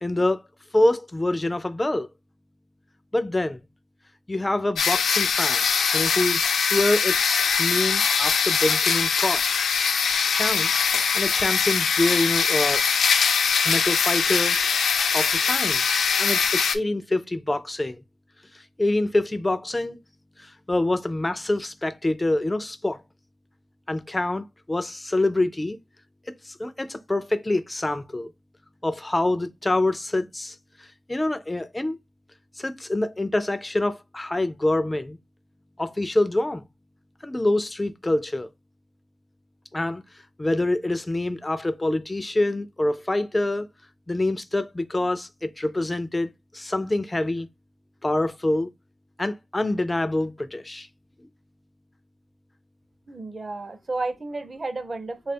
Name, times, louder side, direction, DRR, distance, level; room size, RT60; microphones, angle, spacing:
voice 1, 0.0-0.4 0.7-2.1 3.1-3.6 4.3-9.4 10.3-10.7 11.1-12.8 13.6-14.6 15.1-15.8 16.2-18.0 18.5-20.0 20.4-23.0 23.9-25.8 26.3-28.3 28.8-32.0 32.6-35.2 35.8-36.6 37.2-38.5 39.7-40.0 40.4-43.7 44.1-47.5 48.0-48.7 49.2-50.9, left 2 dB, 15° left, 0.3 m, -26 dB
sound 1, 4.8-16.7, left 6 dB, 90° left, 0.4 m, -22 dB
voice 2, 53.1-55.3, right 2 dB, 30° right, 0.5 m, -32 dB
3.3 x 2.3 x 4.2 m
wide cardioid pair, 130°, 0 cm